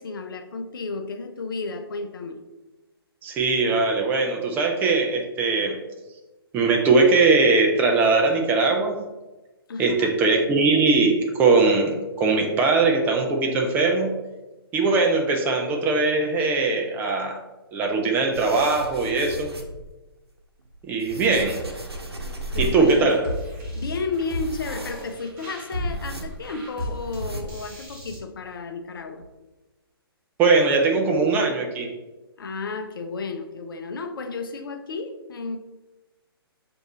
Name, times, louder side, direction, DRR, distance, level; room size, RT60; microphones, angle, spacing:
voice 1, 0.0-2.4 9.7-10.1 22.2-22.3 22.5-23.1 23.8-29.2 32.4-35.6, left 4 dB, 60° left, 6 dB, 0.5 m, -32 dB
voice 2, 3.2-5.8 6.5-9.0 9.8-14.1 14.7-17.4 17.7-19.5 20.8-21.7 22.6-23.3 30.4-31.9, right 3 dB, 15° right, 2 dB, 0.4 m, -20 dB
sound 1, 18.3-19.9 20.6-23.0 23.2-23.3 23.5-23.7 24.2-25.3 25.8-26.6 26.9-27.8 28.1-28.2 28.9-29.0 29.2-29.3, right 1 dB, 85° right, 0.8 m, -35 dB
sound 2, 22.5-28.2, left 1 dB, 30° right, 1.4 m, -34 dB
6.3 x 2.6 x 3.1 m, 1.1 s
figure-of-eight pair, 130°, 13 cm